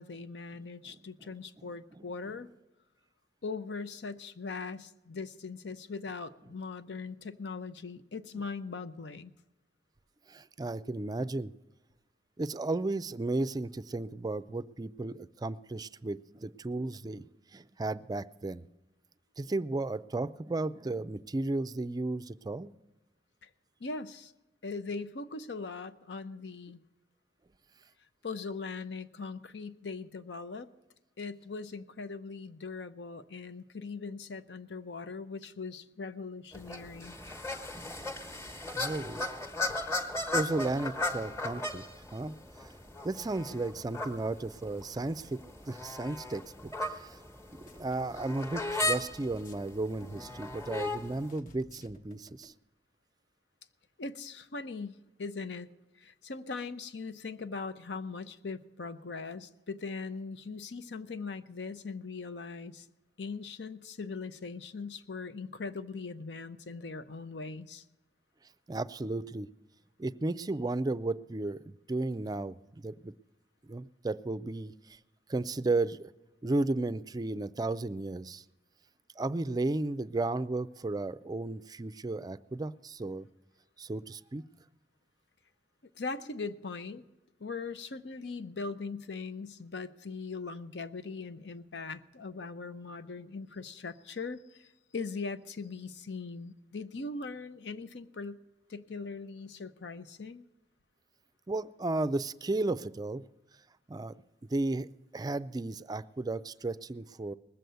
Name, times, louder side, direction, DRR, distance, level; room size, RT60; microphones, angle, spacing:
voice 1, 0.0-2.5 3.4-9.3 23.4-23.5 23.8-24.3 24.6-26.8 28.2-30.7 31.2-37.2 39.7-39.8 54.0-55.7 56.0-62.9 63.2-67.8 86.0-87.0 87.4-98.4 98.7-100.4, left 4 dB, 80° left, 11 dB, 0.7 m, -40 dB
voice 2, 1.6-2.5 7.0-7.1 8.3-8.5 10.3-11.5 12.4-17.2 17.5-18.6 19.4-22.7 38.7-39.2 40.3-41.8 42.1-42.3 43.0-45.4 45.7-46.7 47.0-47.2 47.5-52.5 68.7-69.5 70.0-73.1 73.7-74.7 75.3-76.1 76.4-78.4 79.2-83.3 83.8-84.4 101.5-103.2 103.9-104.1 104.5-104.9 105.1-107.3, right 2 dB, 20° right, 16 dB, 0.4 m, -34 dB
sound 1, 36.5-51.3, left 2 dB, 15° left, 1.2 m, -37 dB
sound 2, 47.7-52.5, left 1 dB, 50° left, 1.2 m, -55 dB
19.5 x 7.8 x 6.8 m, 1.0 s
head